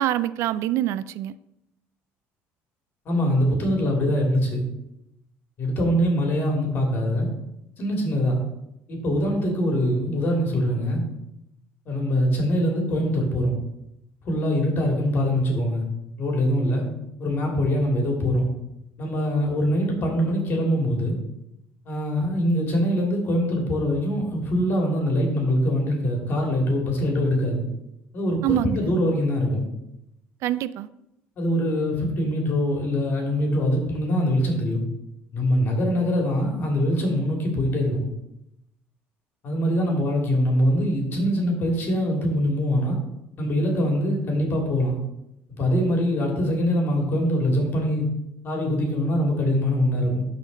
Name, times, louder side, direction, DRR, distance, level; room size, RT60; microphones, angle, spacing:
voice 1, 0.0-1.4 28.4-28.9 30.4-30.9, right 12 dB, 65° right, 16 dB, 0.3 m, -25 dB
voice 2, 3.1-4.6 5.6-7.3 7.8-8.4 8.9-11.0 11.9-13.5 14.2-15.8 16.2-16.9 17.2-18.5 19.0-21.2 21.9-27.6 28.1-29.7 31.4-34.8 35.3-38.1 39.4-43.0 43.4-45.0 45.6-48.1 48.4-50.3, equal, 45° left, 1 dB, 2.5 m, -23 dB
12.0 x 4.3 x 4.0 m, 0.86 s
cardioid pair, 135°, 5 cm